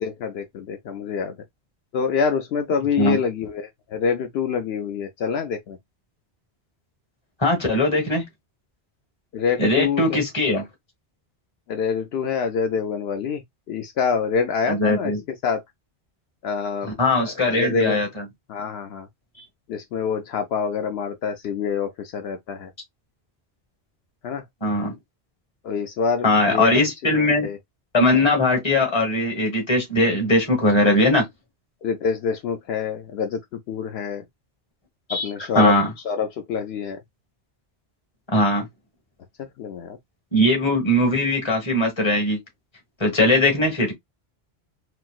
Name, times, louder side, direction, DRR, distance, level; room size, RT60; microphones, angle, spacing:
voice 1, 0.0-1.4 1.9-5.8 9.3-10.2 11.7-13.4 13.7-15.1 15.4-15.6 16.4-18.0 18.5-19.1 19.7-22.7 24.2-24.4 25.6-26.8 27.1-27.6 31.8-34.3 35.1-35.8 36.0-37.0 39.4-40.0, left 6 dB, 75° left, 0.8 m, -26 dB
voice 2, 7.4-8.2 9.6-10.6 14.7-15.2 17.0-18.1 24.6-24.9 26.2-27.5 27.9-31.3 35.1-35.3 35.5-35.9 38.3-38.6 40.3-42.4 43.0-43.9, left 1 dB, 25° left, 1.2 m, -20 dB
4.1 x 2.0 x 2.3 m
omnidirectional pair, 1.1 m